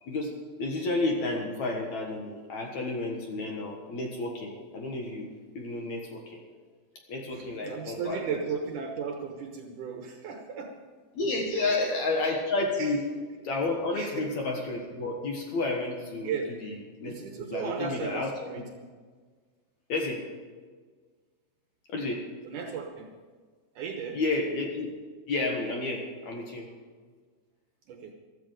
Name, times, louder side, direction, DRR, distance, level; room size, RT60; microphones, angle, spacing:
voice 1, 0.0-5.3 5.5-6.4 7.1-8.4 11.1-13.0 13.4-16.3 16.6-18.5 19.9-20.3 21.9-22.3 24.1-24.9 25.3-26.7, left 2 dB, 60° left, 1 dB, 2.2 m, -31 dB
voice 2, 7.3-10.8 11.5-11.7 12.8-13.0 13.9-14.3 16.2-16.5 17.0-18.7 22.4-23.1 23.8-24.2 27.9-28.1, right 6 dB, 70° right, 3 dB, 2.1 m, -35 dB
15.0 x 13.5 x 5.2 m, 1.5 s
omnidirectional pair, 4.6 m